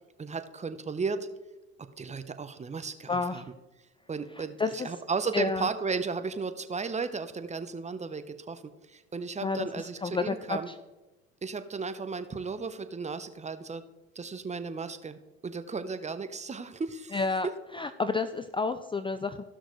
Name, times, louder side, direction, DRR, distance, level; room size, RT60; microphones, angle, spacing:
voice 1, 0.2-1.3 2.0-3.4 4.1-8.6 8.9-10.7 11.4-13.8 14.1-17.2, right 4 dB, 20° right, 10 dB, 0.9 m, -34 dB
voice 2, 3.1-3.4 4.6-4.9 5.3-5.7 9.4-10.7 17.1-17.5 17.7-19.4, left 4 dB, 15° left, 11 dB, 0.4 m, -30 dB
15.5 x 6.2 x 3.2 m, 1.1 s
hypercardioid pair, 70°, 32 cm